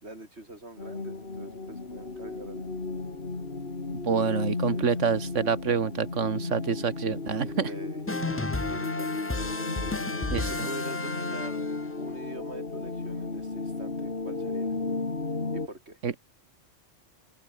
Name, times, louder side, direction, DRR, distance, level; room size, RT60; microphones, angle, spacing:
voice 1, 0.0-2.6 4.7-4.8 7.5-9.3 10.5-11.6 12.0-14.7 15.5-16.0, right 1 dB, 60° right, 6.7 m, -44 dB
sound 1, 0.8-15.7, left 3 dB, 50° left, 2.7 m, -34 dB
voice 2, 4.0-7.7 10.3-10.7 16.0-16.1, right 6 dB, 80° right, 1.8 m, -27 dB
sound 2, 8.1-11.9, left 2 dB, 15° left, 0.6 m, -33 dB
open air
omnidirectional pair, 1.2 m